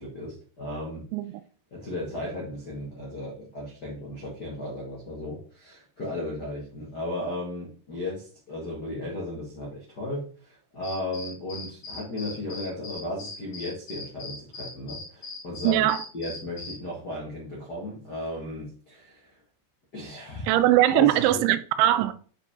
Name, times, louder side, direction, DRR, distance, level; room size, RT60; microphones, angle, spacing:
voice 1, 0.0-1.0 1.7-15.8 16.1-19.3 19.9-20.5 20.9-21.4, left 1 dB, 85° left, 0.9 m, -35 dB
sound 1, 10.8-16.8, left 3 dB, 50° left, 1.7 m, -40 dB
voice 2, 15.6-16.0 20.5-22.1, right 14 dB, 85° right, 2.8 m, -21 dB
8.4 x 5.0 x 3.7 m
omnidirectional pair, 5.4 m